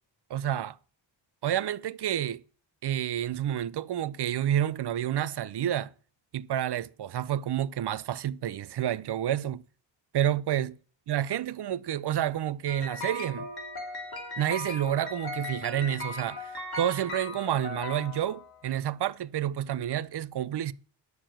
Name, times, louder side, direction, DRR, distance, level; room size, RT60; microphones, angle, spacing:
voice 1, 0.3-0.8 1.4-2.4 2.8-5.9 6.3-9.6 10.1-10.8 11.1-13.5 14.4-20.7, right 11 dB, 60° right, 0.6 m, -29 dB
sound 1, 12.7-18.7, left 3 dB, 50° left, 2.5 m, -38 dB
11.0 x 6.8 x 7.4 m
wide cardioid pair, 130°, 47 cm